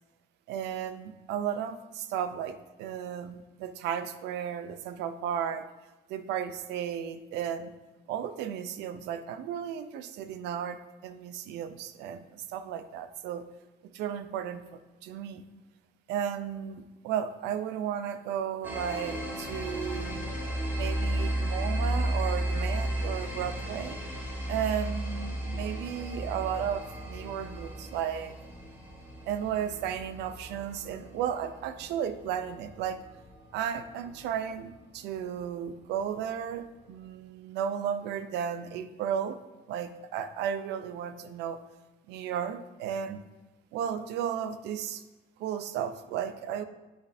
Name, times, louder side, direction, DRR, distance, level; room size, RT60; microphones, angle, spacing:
voice 1, 0.5-5.7 6.1-7.7 8.1-13.4 13.9-14.6 15.0-15.4 16.1-20.3 20.7-24.0 24.5-28.4 29.3-33.0 33.5-39.4 39.7-41.6 42.1-43.2 43.7-45.0 45.4-46.6, right 9 dB, 85° right, 11 dB, 0.5 m, -34 dB
sound 1, 18.6-34.1, right 1 dB, 10° right, 1.3 m, -34 dB
8.7 x 5.3 x 2.7 m, 1.1 s
cardioid pair, 110°, 17 cm